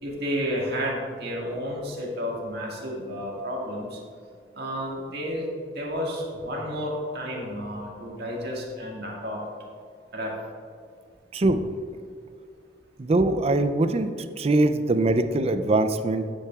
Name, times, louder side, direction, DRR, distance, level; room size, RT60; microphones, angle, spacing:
voice 1, 0.0-4.0 4.5-5.5 5.8-9.4 10.1-10.3, equal, 60° right, -2 dB, 1.8 m, -31 dB
voice 2, 11.3-11.6 13.0-14.1 14.4-16.3, right 2 dB, 35° right, 10 dB, 0.4 m, -22 dB
9.9 x 8.6 x 2.4 m, 2.3 s
head